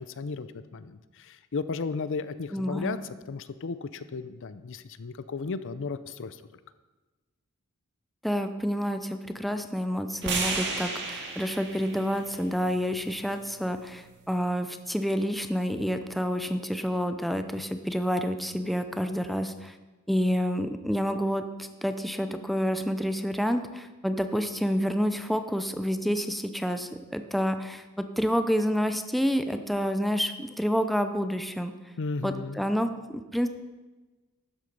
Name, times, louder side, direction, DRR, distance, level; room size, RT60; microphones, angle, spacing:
voice 1, 0.0-3.0 3.3-6.4 32.0-32.6, left 4 dB, 60° left, 13 dB, 0.5 m, -34 dB
voice 2, 2.5-3.0 8.2-19.8 20.1-31.7 32.2-33.5, equal, ahead, 8 dB, 0.5 m, -28 dB
sound 1, 10.2-14.4, right 3 dB, 55° right, 1.9 m, -35 dB
12.5 x 8.1 x 5.3 m, 1.2 s
head